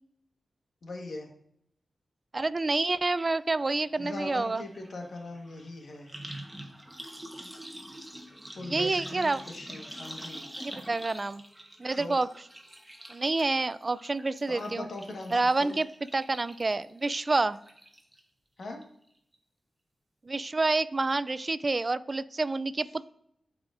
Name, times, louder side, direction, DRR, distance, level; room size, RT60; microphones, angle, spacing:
voice 1, 0.8-1.3 4.0-6.2 8.5-10.5 11.9-12.1 14.5-15.8 18.6-18.8, left 2 dB, 65° left, 2 dB, 1.4 m, -40 dB
voice 2, 2.3-4.6 8.6-9.4 10.6-11.4 11.8-12.3 13.1-14.9 15.3-15.9 16.1-17.6 20.3-23.0, right 3 dB, 30° right, 16 dB, 0.3 m, -28 dB
sound 1, 3.2-3.3 3.6-18.2 18.6-19.1 19.3-19.4, right 1 dB, 5° right, 1.1 m, -46 dB
12.5 x 4.8 x 2.6 m, 0.72 s
wide cardioid pair, 100°, 0 cm